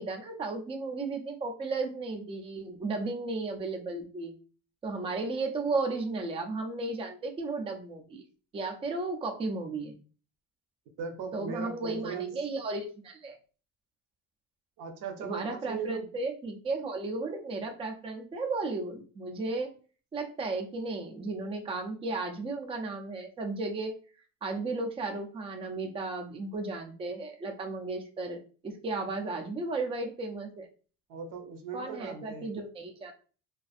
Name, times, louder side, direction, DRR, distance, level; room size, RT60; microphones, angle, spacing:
voice 1, 0.0-4.3 4.8-8.2 8.5-10.0 11.3-13.4 15.2-19.7 20.1-23.9 24.4-28.4 28.6-30.7 31.7-33.1, right 3 dB, 15° right, 3 dB, 0.4 m, -34 dB
voice 2, 11.0-12.4 14.8-16.1 31.1-32.5, right 5 dB, 60° right, 5 dB, 0.7 m, -38 dB
2.5 x 2.3 x 2.4 m, 0.38 s
cardioid pair, 130°, 36 cm